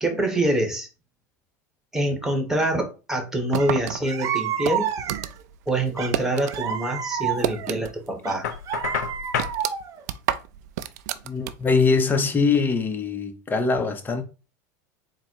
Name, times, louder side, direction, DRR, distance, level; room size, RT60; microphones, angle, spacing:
voice 1, 0.0-0.9 1.9-4.9 5.7-8.5, right 1 dB, 5° right, 1.2 m, -25 dB
sound 1, 3.5-6.6 6.9-8.2 8.4-8.5 9.0-11.8, right 12 dB, 75° right, 0.4 m, -30 dB
sound 2, 3.6-3.7 4.0-5.4 6.0-7.7 8.2-10.0, right 9 dB, 40° right, 0.7 m, -29 dB
Knock, 8.4-9.6, left 8 dB, 90° left, 0.6 m, -29 dB
voice 2, 11.2-14.2, left 4 dB, 20° left, 0.8 m, -22 dB
4.0 x 2.2 x 4.6 m
supercardioid pair, 105°, 9 cm